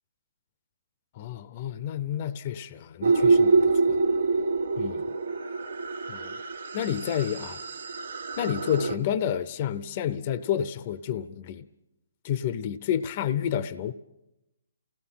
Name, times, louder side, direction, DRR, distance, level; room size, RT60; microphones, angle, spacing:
voice 1, 1.1-4.0 4.8-5.0 6.1-6.4 6.7-7.6 8.4-11.7 12.2-13.9, left 9 dB, 35° left, 0.7 m, -30 dB
sound 1, 3.0-9.0, right 4 dB, 90° right, 1.4 m, -25 dB
28.0 x 18.0 x 5.7 m
hypercardioid pair, 155°, 0 cm